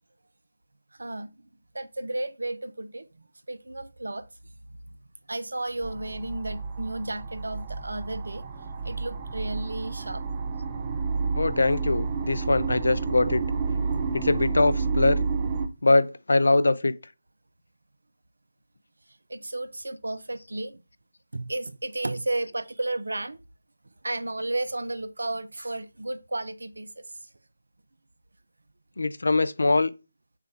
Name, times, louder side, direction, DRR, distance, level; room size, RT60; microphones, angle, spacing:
voice 1, 1.0-1.3 1.7-4.3 4.7-5.0 5.3-8.5 8.8-10.2 19.3-20.8 21.3-23.4 24.0-27.3, right 2 dB, 75° right, 0.5 m, -33 dB
sound 1, 5.8-15.7, right 4 dB, 25° right, 0.5 m, -30 dB
voice 2, 11.3-13.4 14.1-15.2 15.8-17.0 29.0-29.9, left 2 dB, 70° left, 0.5 m, -22 dB
6.5 x 2.4 x 3.3 m
figure-of-eight pair, 160°, 0 cm